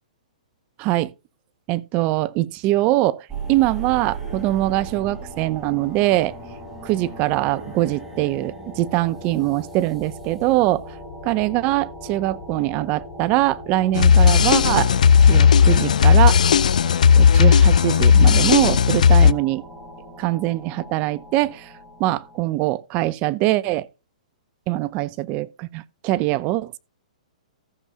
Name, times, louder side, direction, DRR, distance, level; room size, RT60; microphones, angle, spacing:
voice 1, 0.8-1.1 1.7-6.3 6.8-10.9 11.2-14.9 15.2-16.4 17.2-19.6 20.2-21.7 22.0-23.9 24.7-26.8, right 17 dB, 35° right, 0.7 m, -22 dB
sound 1, 3.3-22.5, right 1 dB, 10° right, 6.8 m, -38 dB
sound 2, 14.0-19.3, left 7 dB, 75° left, 0.4 m, -14 dB
14.0 x 7.1 x 3.7 m
hypercardioid pair, 125°, 4 cm